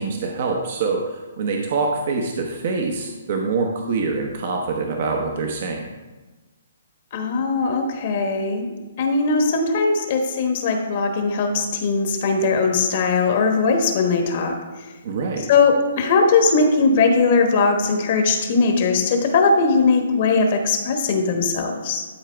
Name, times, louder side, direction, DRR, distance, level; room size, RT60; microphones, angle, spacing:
voice 1, 0.0-5.8 15.0-15.5, right 4 dB, 55° right, 1 dB, 1.0 m, -25 dB
voice 2, 7.1-8.7 9.0-14.6 15.5-22.0, left 4 dB, 45° left, 4 dB, 1.1 m, -19 dB
11.5 x 4.7 x 3.4 m, 1.2 s
hypercardioid pair, 150°, 0 cm